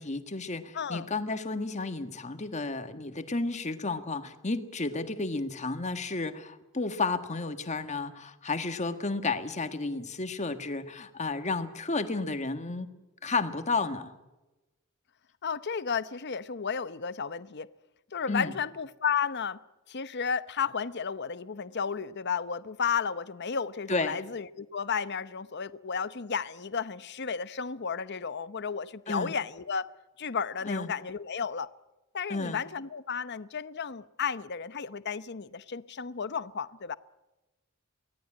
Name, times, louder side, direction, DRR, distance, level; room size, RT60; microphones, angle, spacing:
voice 1, 0.0-12.9 13.2-14.1 18.3-18.5 23.9-24.2 29.1-29.4 30.7-30.9 32.3-32.6, left 3 dB, 35° left, 1.6 m, -32 dB
voice 2, 0.7-1.1 15.4-17.7 18.1-19.6 19.9-29.9 30.2-31.7 32.1-36.9, left 6 dB, 55° left, 0.8 m, -33 dB
24.0 x 17.5 x 8.7 m
head